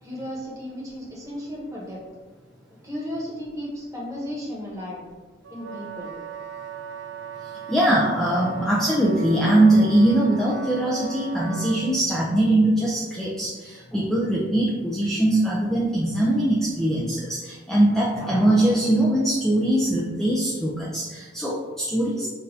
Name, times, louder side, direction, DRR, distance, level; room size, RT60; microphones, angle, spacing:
voice 1, 0.0-2.0 2.8-5.0 5.5-6.1, equal, 15° right, -5 dB, 1.1 m, -34 dB
Wind instrument woodwind instrument, 5.4-12.0, right 7 dB, 65° right, 0.4 m, -38 dB
voice 2, 7.4-22.3, right 1 dB, ahead, -6 dB, 0.4 m, -21 dB
5.9 x 2.6 x 2.6 m, 1.3 s
head